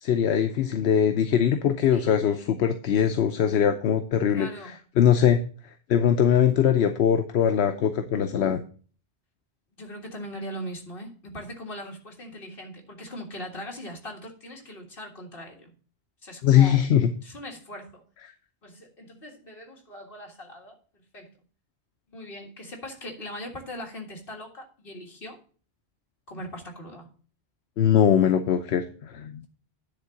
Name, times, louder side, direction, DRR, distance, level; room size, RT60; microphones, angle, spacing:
voice 1, 0.0-4.5 5.0-5.4 5.9-8.6 16.4-17.1 27.8-29.5, left 9 dB, 80° left, 7 dB, 0.9 m, -21 dB
voice 2, 1.9-2.2 4.3-4.8 9.7-15.7 16.2-16.8 17.2-18.0 18.6-20.8 21.1-21.3 22.1-25.4 26.3-27.1, equal, 60° left, 1 dB, 2.0 m, -40 dB
10.0 x 3.7 x 7.0 m, 0.41 s
omnidirectional pair, 1.1 m